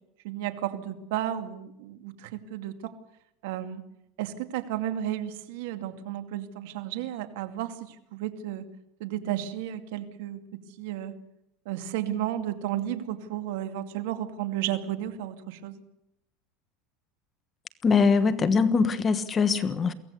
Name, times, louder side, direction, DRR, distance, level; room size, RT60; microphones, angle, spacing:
voice 1, 0.2-2.9 3.4-3.8 4.2-8.6 9.0-11.1 11.7-15.8, right 12 dB, 75° right, 8 dB, 2.4 m, -33 dB
voice 2, 17.8-19.9, left 5 dB, 25° left, 11 dB, 1.4 m, -22 dB
23.0 x 17.0 x 8.3 m, 0.82 s
supercardioid pair, 140°, 0 cm